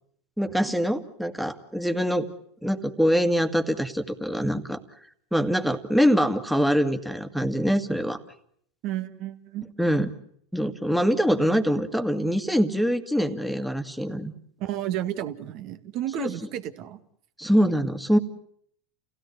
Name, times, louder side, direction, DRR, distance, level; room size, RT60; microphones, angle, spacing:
voice 1, 0.4-2.3 2.6-4.8 5.3-8.2 9.8-10.1 10.5-14.3 16.2-16.3 17.4-18.2, equal, ahead, 7 dB, 2.1 m, -24 dB
voice 2, 8.8-9.6 14.6-17.0, right 12 dB, 50° right, 10 dB, 2.0 m, -32 dB
29.5 x 17.0 x 9.5 m, 0.67 s
hypercardioid pair, 95°, 0 cm